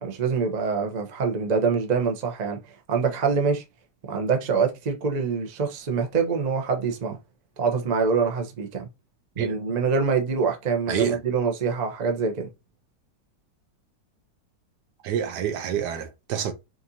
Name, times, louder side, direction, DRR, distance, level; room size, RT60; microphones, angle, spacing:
voice 1, 0.0-2.6 2.9-3.6 4.1-7.2 7.6-8.9 9.4-12.5, right 5 dB, 40° right, 0.6 m, -25 dB
voice 2, 10.9-11.2 15.0-16.5, right 8 dB, 75° right, 1.2 m, -27 dB
5.2 x 2.6 x 2.7 m
omnidirectional pair, 1.9 m